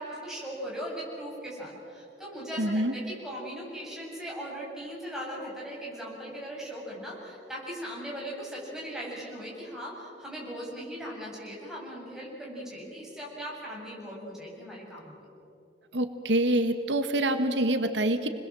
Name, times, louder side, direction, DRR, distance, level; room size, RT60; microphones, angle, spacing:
voice 1, 0.0-15.1, equal, 5° right, -5 dB, 7.9 m, -39 dB
voice 2, 2.6-2.9 15.9-18.3, right 1 dB, 85° right, 8 dB, 1.5 m, -26 dB
29.0 x 21.5 x 7.7 m, 2.8 s
head